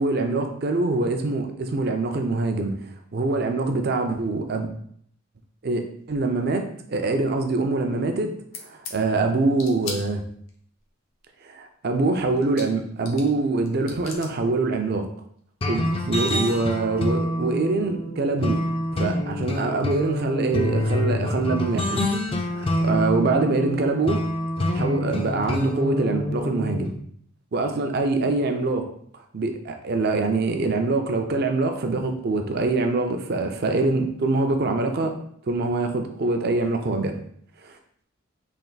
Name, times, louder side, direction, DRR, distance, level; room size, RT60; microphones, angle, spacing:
voice 1, 0.0-2.8 3.1-4.7 5.6-8.3 8.6-10.2 11.4-15.1 15.7-18.7 19.0-22.0 22.4-24.3 24.7-26.9 27.5-28.9 29.3-35.1 35.5-37.1 37.6-37.7, right 3 dB, 50° right, 5 dB, 0.5 m, -24 dB
sound 1, 8.5-9.0 9.6-10.5 12.0-12.1 12.4-13.4 13.7-14.3 15.6-15.7 15.9-16.4, left 4 dB, 80° left, 0.7 m, -37 dB
sound 2, 15.6-26.9, left 1 dB, 25° left, 0.4 m, -26 dB
3.4 x 2.5 x 3.9 m, 0.65 s
head